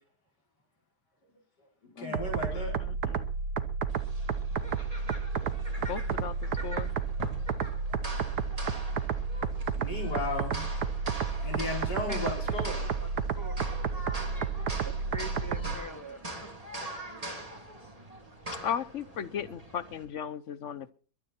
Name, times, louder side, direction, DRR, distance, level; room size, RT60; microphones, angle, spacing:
voice 1, 1.6-2.7 7.5-7.8 9.7-10.7 11.4-12.8, left 2 dB, 80° left, 5.8 m, -35 dB
sound 1, 2.1-15.8, right 5 dB, 75° right, 1.7 m, -32 dB
voice 2, 2.5-3.3 5.8-6.3 6.6-6.9 18.6-20.9, left 8 dB, 55° left, 1.0 m, -36 dB
sound 2, 3.9-20.0, right 1 dB, 20° right, 3.2 m, -43 dB
voice 3, 6.1-6.9 12.1-12.3 12.6-12.7 13.0-13.1 13.4-14.3 14.8-16.5, right 1 dB, 10° left, 1.2 m, -45 dB
22.5 x 9.8 x 4.4 m
omnidirectional pair, 1.8 m